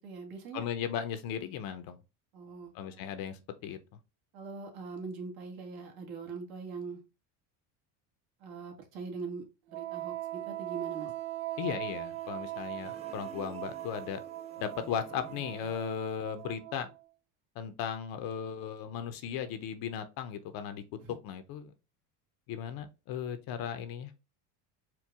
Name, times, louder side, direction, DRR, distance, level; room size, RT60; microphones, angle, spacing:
voice 1, 0.0-0.6 2.3-3.0 4.3-7.0 8.4-11.1 21.0-21.2, right 4 dB, 60° right, 1.5 m, -42 dB
voice 2, 0.5-2.0 2.7-3.8 11.6-14.2 14.6-16.9 17.6-20.8 21.2-21.7 22.5-24.1, left 8 dB, 55° left, 0.7 m, -36 dB
Wind instrument woodwind instrument, 9.7-17.0, right 15 dB, 75° right, 0.6 m, -40 dB
sound 1, 11.9-16.2, right 4 dB, 15° right, 0.5 m, -54 dB
4.5 x 2.3 x 3.5 m
cardioid pair, 125°, 42 cm